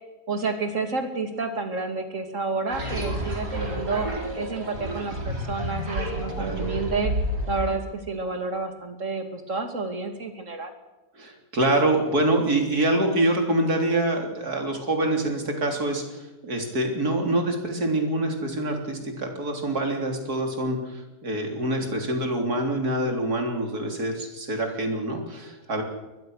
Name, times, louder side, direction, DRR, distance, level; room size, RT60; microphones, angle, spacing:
voice 1, 0.3-4.1 4.4-7.1 7.5-10.7, right 4 dB, 50° right, 6 dB, 2.9 m, -30 dB
sound 1, 2.7-7.8, equal, 90° right, 5.1 m, -30 dB
voice 2, 6.3-6.7 11.2-25.8, right 1 dB, 75° right, 3 dB, 4.0 m, -25 dB
22.5 x 21.0 x 6.5 m, 1.1 s
omnidirectional pair, 1.7 m